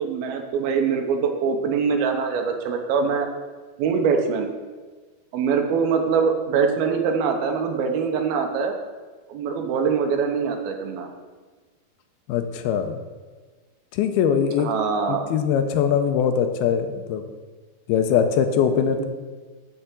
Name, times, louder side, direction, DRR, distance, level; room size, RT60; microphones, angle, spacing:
voice 1, 0.0-3.3 3.8-4.5 5.3-8.8 9.3-11.1 14.6-15.2 19.0-19.1, right 6 dB, 75° right, 4 dB, 2.7 m, -23 dB
voice 2, 12.3-13.0 13.9-14.7 15.1-17.3 17.9-19.1, left 7 dB, 85° left, 7 dB, 2.6 m, -22 dB
6.8 x 6.8 x 7.4 m, 1.4 s
omnidirectional pair, 4.4 m